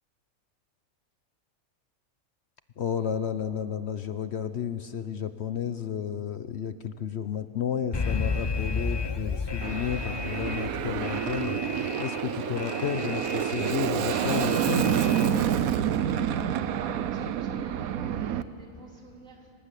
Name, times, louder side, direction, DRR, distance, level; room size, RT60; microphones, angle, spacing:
voice 1, 2.8-15.0, left 8 dB, 55° left, 11 dB, 0.9 m, -32 dB
Alarm, 7.9-15.6, left 4 dB, 30° left, 0.5 m, -33 dB
Aircraft, 9.6-18.4, right 9 dB, 85° right, 1.2 m, -28 dB
voice 2, 16.2-19.5, right 2 dB, 60° right, -2 dB, 3.9 m, -49 dB
27.5 x 18.5 x 8.3 m, 2.5 s
omnidirectional pair, 1.5 m